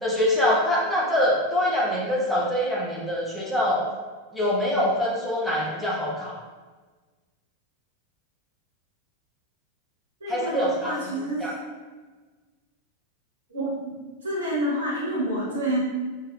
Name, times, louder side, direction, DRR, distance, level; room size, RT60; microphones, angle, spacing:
voice 1, 0.0-3.8 4.3-6.3 10.3-10.9 11.4-11.5, left 1 dB, 5° left, -7 dB, 1.0 m, -24 dB
voice 2, 10.2-11.5 13.5-13.9 14.2-15.8, right 1 dB, 75° right, -6 dB, 1.3 m, -28 dB
4.9 x 2.7 x 2.6 m, 1.3 s
figure-of-eight pair, 90°, 0 cm